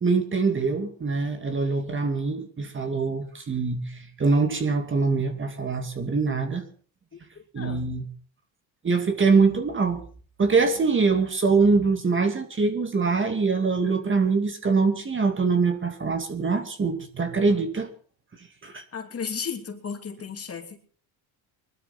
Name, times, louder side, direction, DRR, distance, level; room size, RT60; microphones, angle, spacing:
voice 1, 0.0-6.6 7.5-8.0 8.8-10.0 10.4-17.9 18.6-18.8, right 4 dB, 25° right, 7 dB, 2.2 m, -23 dB
voice 2, 7.5-7.8 18.9-20.8, left 6 dB, 35° left, 4 dB, 2.9 m, -34 dB
21.0 x 12.5 x 4.2 m, 0.42 s
supercardioid pair, 95°, 43 cm